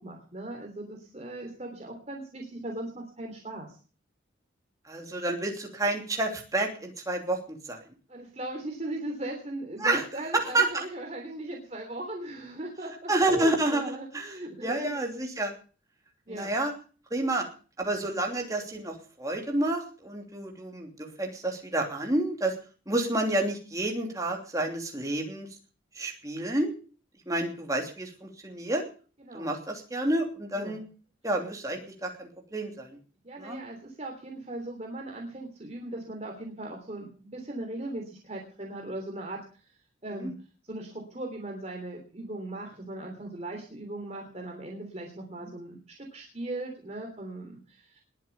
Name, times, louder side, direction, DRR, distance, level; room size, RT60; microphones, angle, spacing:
voice 1, 0.0-3.8 8.1-15.0 16.3-16.6 29.2-29.5 30.6-30.8 33.2-39.6 40.0-40.3 40.7-48.0, right 1 dB, 35° right, 1 dB, 3.2 m, -38 dB
voice 2, 4.9-7.8 9.8-10.0 10.4-10.8 13.1-14.3 14.6-15.5 16.3-16.7 17.1-17.5 17.8-22.5 22.9-25.5 26.0-26.7 27.3-28.8 29.3-30.8 31.2-32.9 33.4-33.6 40.2-40.3, right 2 dB, 20° right, 1 dB, 3.0 m, -29 dB
21.0 x 7.5 x 7.0 m, 0.40 s
head